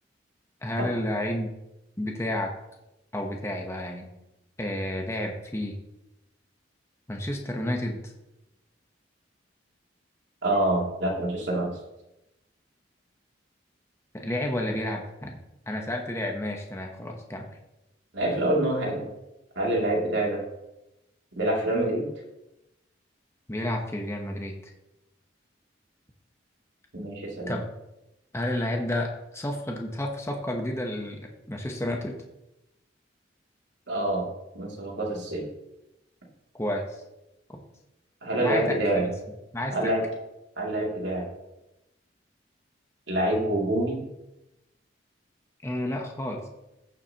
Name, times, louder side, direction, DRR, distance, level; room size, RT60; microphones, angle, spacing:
voice 1, 0.6-1.5 2.0-2.6 3.1-4.1 4.6-5.8 7.1-8.1 14.1-15.4 15.7-17.5 23.5-24.6 27.5-27.7 28.3-32.2 36.5-37.0 37.5-37.6 38.4-38.8 39.5-39.9 45.6-46.5, left 1 dB, 15° left, 1 dB, 0.9 m, -31 dB
voice 2, 10.4-11.8 18.1-19.1 19.6-20.4 21.3-22.1 26.9-27.6 33.9-34.3 34.5-35.5 38.2-39.1 39.7-40.0 40.6-41.3 43.1-44.0, right 1 dB, 70° right, -2 dB, 2.7 m, -26 dB
14.5 x 7.2 x 2.9 m, 0.92 s
head